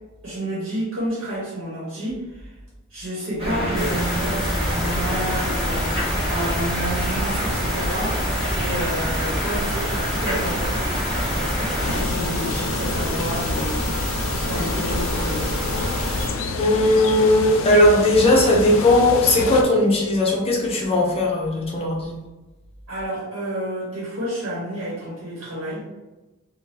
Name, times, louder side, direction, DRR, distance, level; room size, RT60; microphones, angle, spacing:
voice 1, 0.2-2.5 2.9-8.2 8.5-10.8 11.4-13.8 14.4-15.6 22.9-25.9, equal, 70° right, -6 dB, 1.0 m, -30 dB
sound 1, 3.4-12.0, equal, 30° right, 1.0 m, -27 dB
sound 2, 3.7-16.3, equal, ahead, 0.8 m, -27 dB
sound 3, 11.8-19.6, left 3 dB, 65° left, 0.4 m, -28 dB
voice 2, 16.6-22.1, left 1 dB, 30° left, -1 dB, 0.6 m, -18 dB
3.4 x 2.2 x 2.9 m, 1.1 s
head